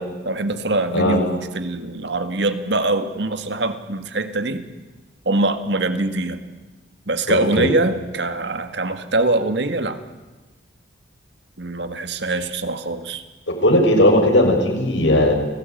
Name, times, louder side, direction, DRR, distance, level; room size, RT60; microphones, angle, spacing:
voice 1, 0.3-4.7 5.3-6.4 7.1-10.0 11.6-13.2, right 2 dB, 65° right, 9 dB, 2.0 m, -23 dB
voice 2, 7.3-7.7 13.5-15.3, left 1 dB, 75° left, 3 dB, 6.1 m, -17 dB
29.5 x 19.0 x 9.3 m, 1.2 s
head